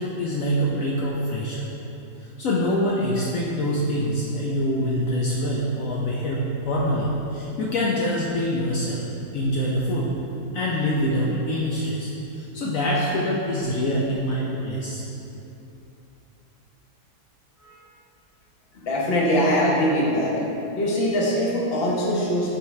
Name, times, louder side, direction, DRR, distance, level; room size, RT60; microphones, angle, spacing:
voice 1, 0.0-1.7 2.2-9.1 9.3-10.1 10.5-15.1 17.6-17.8, equal, 75° left, -4 dB, 0.7 m, -25 dB
voice 2, 18.8-20.4 20.8-22.6, equal, 40° left, -4 dB, 0.9 m, -22 dB
8.1 x 4.6 x 3.2 m, 2.9 s
omnidirectional pair, 2.1 m